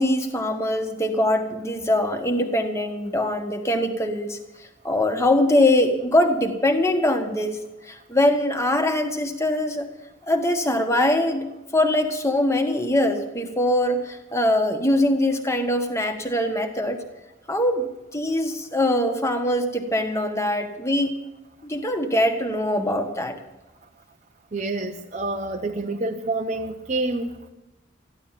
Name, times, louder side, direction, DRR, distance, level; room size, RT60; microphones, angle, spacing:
voice 1, 0.0-4.4 4.8-7.6 7.8-9.9 10.3-11.4 11.7-17.0 17.5-21.1 21.6-23.4, left 1 dB, 15° left, 5 dB, 1.5 m, -22 dB
voice 2, 24.5-27.3, right 2 dB, 35° right, 3 dB, 0.8 m, -27 dB
14.5 x 11.5 x 7.4 m, 1.0 s
head